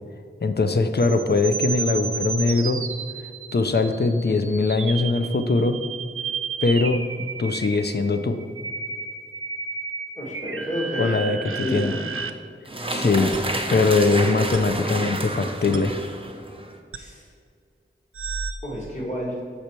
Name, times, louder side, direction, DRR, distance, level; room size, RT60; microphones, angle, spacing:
voice 1, 0.4-2.8 3.5-5.8 6.6-7.0 7.4-8.4 11.0-11.9 12.9-13.3 13.7-15.9, left 3 dB, 50° left, 8 dB, 0.5 m, -21 dB
sound 1, 1.0-12.3 13.3-13.4 14.5-14.6 15.7-15.8 16.9-17.0 18.1-18.5, right 5 dB, 80° right, 0.5 m, -32 dB
voice 2, 10.2-11.2 11.5-12.0 16.9-17.2 18.6-19.4, equal, 35° left, -4 dB, 1.9 m, -30 dB
sound 2, 12.6-16.7, right 1 dB, 25° right, 0.7 m, -30 dB
6.7 x 5.6 x 4.4 m, 2.2 s
wide cardioid pair, 45°, 21 cm